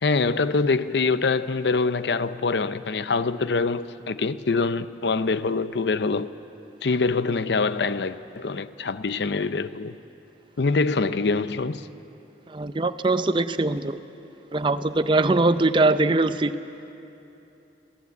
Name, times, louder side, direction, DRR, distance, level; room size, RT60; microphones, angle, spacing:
voice 1, 0.0-6.3 6.8-10.0 10.6-11.8, left 4 dB, 75° left, 0.6 m, -24 dB
voice 2, 12.5-14.0 14.5-16.5, right 2 dB, 25° right, 0.5 m, -22 dB
21.5 x 16.5 x 8.3 m
head